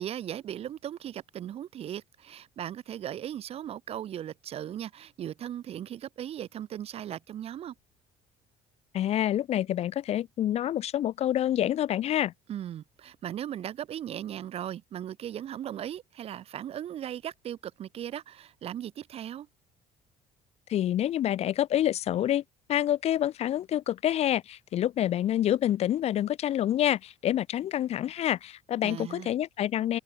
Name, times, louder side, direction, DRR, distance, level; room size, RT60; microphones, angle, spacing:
voice 1, 0.0-7.7 12.5-19.5 28.8-29.3, right 11 dB, 40° right, 0.4 m, -38 dB
voice 2, 8.9-12.3 20.7-22.4 22.7-30.0, left 12 dB, 45° left, 0.4 m, -27 dB
cardioid pair, 100°, 15 cm